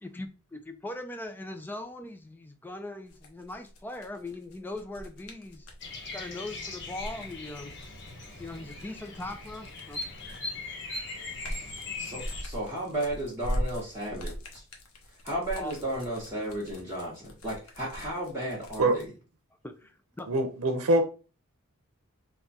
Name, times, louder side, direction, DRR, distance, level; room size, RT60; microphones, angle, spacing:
voice 1, 0.0-5.7 6.1-7.8 8.4-10.1 15.6-15.9 19.6-20.3, left 2 dB, 10° left, 0.4 m, -40 dB
sound 1, 3.1-5.9 6.8-10.6 11.0-19.1, equal, 80° left, 0.8 m, -40 dB
Bird vocalization bird call bird song, 5.8-12.4, left 3 dB, 50° left, 1.0 m, -40 dB
voice 2, 12.0-14.3 15.2-19.0, right 1 dB, 10° right, 1.0 m, -34 dB
voice 3, 20.3-21.0, right 1 dB, 90° right, 0.7 m, -23 dB
3.6 x 2.3 x 4.0 m
head